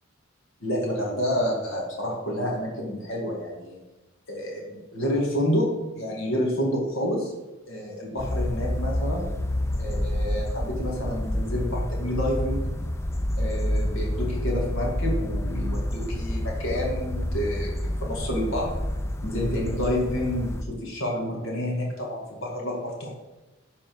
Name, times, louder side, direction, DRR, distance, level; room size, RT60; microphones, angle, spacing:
voice 1, 0.6-3.8 4.3-5.7 5.9-7.3 7.7-9.3 9.8-12.7 13.4-18.7 19.2-23.1, equal, 65° left, -2 dB, 2.0 m, -29 dB
sound 1, 8.2-20.6, left 1 dB, 10° left, 0.3 m, -28 dB
12.0 x 4.2 x 4.6 m, 1.1 s
head